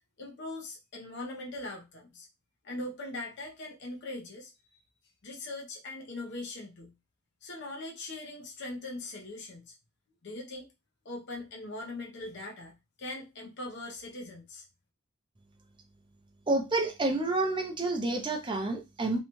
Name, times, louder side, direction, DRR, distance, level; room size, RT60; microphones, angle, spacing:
voice 1, 0.2-2.3 2.6-4.8 5.2-6.9 7.4-9.7 10.2-10.7 11.0-14.6, left 2 dB, 55° left, 0.6 m, -41 dB
voice 2, 16.5-19.2, right 2 dB, 20° right, 0.4 m, -29 dB
2.7 x 2.2 x 2.9 m
head